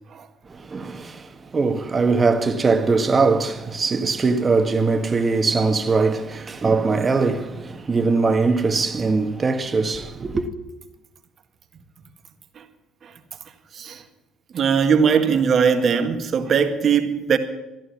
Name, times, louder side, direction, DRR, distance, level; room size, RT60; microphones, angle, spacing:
voice 1, 0.5-10.5, right 4 dB, 30° right, 1.6 m, -21 dB
voice 2, 13.7-14.0 14.5-17.4, right 6 dB, 50° right, 1.8 m, -20 dB
14.5 x 11.5 x 7.3 m
supercardioid pair, 80°, 0 cm